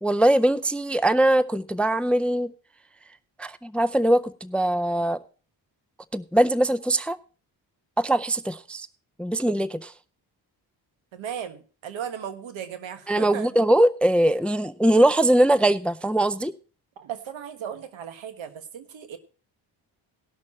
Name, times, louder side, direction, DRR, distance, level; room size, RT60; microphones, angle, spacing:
voice 1, 0.0-2.5 3.4-5.2 6.1-7.2 8.0-8.9 9.2-9.9 13.1-16.5, right 1 dB, 5° left, 17 dB, 0.4 m, -21 dB
voice 2, 11.1-13.5 17.0-19.2, right 8 dB, 80° right, 10 dB, 1.4 m, -36 dB
18.5 x 6.3 x 4.2 m, 0.37 s
cardioid pair, 65°, 46 cm